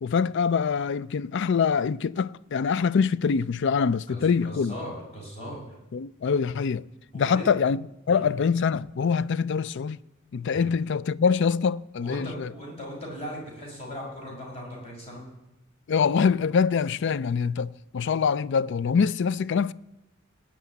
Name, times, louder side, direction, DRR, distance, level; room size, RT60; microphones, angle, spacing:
voice 1, 0.0-4.8 5.9-6.9 7.1-10.0 10.3-12.5 15.9-19.7, left 6 dB, 60° left, 0.4 m, -24 dB
voice 2, 4.1-5.7 7.1-7.5 8.1-8.2 10.5-10.7 12.0-15.2, equal, 30° left, 5.9 m, -38 dB
18.5 x 6.2 x 9.4 m
head